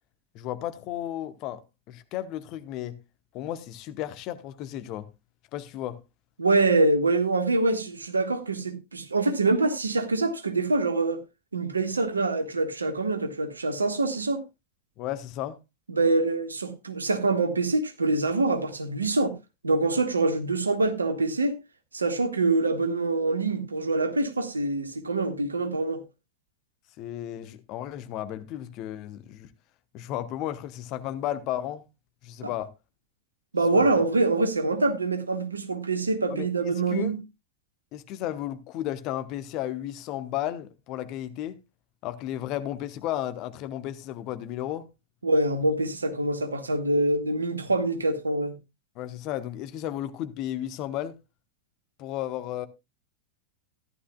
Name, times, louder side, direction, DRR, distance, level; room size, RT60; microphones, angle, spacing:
voice 1, 0.3-1.6 1.9-3.0 3.3-5.1 5.5-6.0 15.0-15.6 27.0-29.5 29.9-31.8 32.2-32.7 33.8-34.0 36.3-37.2 37.9-41.6 42.0-44.9 48.9-51.2 52.0-52.7, left 12 dB, 40° left, 1.0 m, -33 dB
voice 2, 6.4-11.2 11.5-14.4 15.9-19.3 19.6-21.6 21.9-26.0 32.4-32.5 33.5-37.2 45.2-48.5, right 2 dB, 75° right, 1.5 m, -25 dB
14.0 x 11.5 x 2.3 m
figure-of-eight pair, 90°, 0 cm